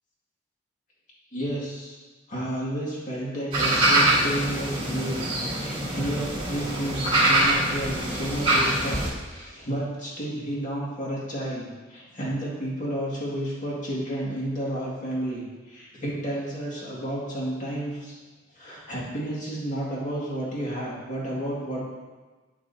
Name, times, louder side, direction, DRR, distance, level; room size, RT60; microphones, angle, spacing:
voice 1, 1.3-1.9 2.3-18.2 18.5-21.8, right 1 dB, 40° left, -6 dB, 2.1 m, -31 dB
sound 1, 3.5-9.1, right 1 dB, 30° right, 2.1 m, -24 dB
9.1 x 7.8 x 2.7 m, 1.3 s
head